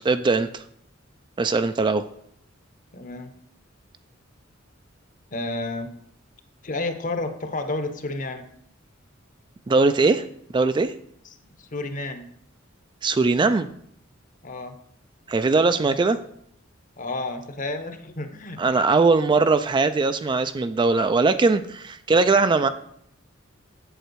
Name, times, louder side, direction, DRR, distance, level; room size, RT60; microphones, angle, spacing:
voice 1, 0.0-0.6 1.4-2.0 9.7-10.2 10.5-10.9 13.0-13.7 15.3-16.2 18.6-22.7, right 3 dB, 25° right, 10 dB, 0.3 m, -20 dB
voice 2, 2.9-3.3 5.3-5.9 6.6-8.5 11.6-12.3 14.4-14.8 17.0-18.6, left 2 dB, 40° left, 8 dB, 0.9 m, -31 dB
8.0 x 7.5 x 4.6 m, 0.70 s
head